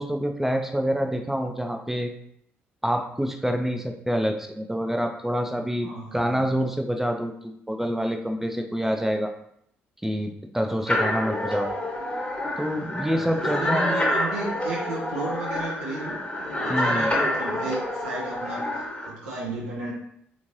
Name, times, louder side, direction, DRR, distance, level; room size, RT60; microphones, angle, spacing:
voice 1, 0.0-2.1 2.8-9.3 10.0-11.7 12.6-14.0 16.7-17.1, equal, 5° right, 5 dB, 0.5 m, -27 dB
voice 2, 5.8-6.4 13.2-19.9, right 2 dB, 80° right, -5 dB, 0.6 m, -34 dB
sound 1, 10.9-19.1, left 1 dB, 20° left, 0.9 m, -27 dB
3.5 x 3.0 x 2.6 m, 0.72 s
figure-of-eight pair, 45°, 6 cm